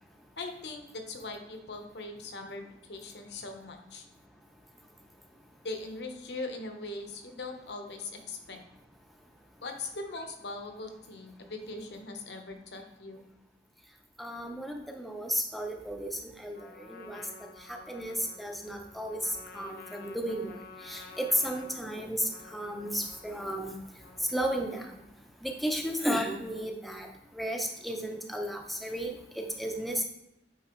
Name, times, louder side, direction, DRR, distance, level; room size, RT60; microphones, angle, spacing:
voice 1, 0.4-4.0 5.6-8.6 9.6-13.2, left 2 dB, 65° left, 4 dB, 0.9 m, -40 dB
voice 2, 14.2-17.2 17.7-19.2 19.5-20.6 20.8-23.8 24.3-24.8 25.4-27.1 27.3-30.0, equal, ahead, 2 dB, 0.6 m, -33 dB
Trumpet, 16.5-25.2, left 4 dB, 50° left, 0.5 m, -51 dB
8.7 x 4.0 x 3.0 m, 0.87 s
head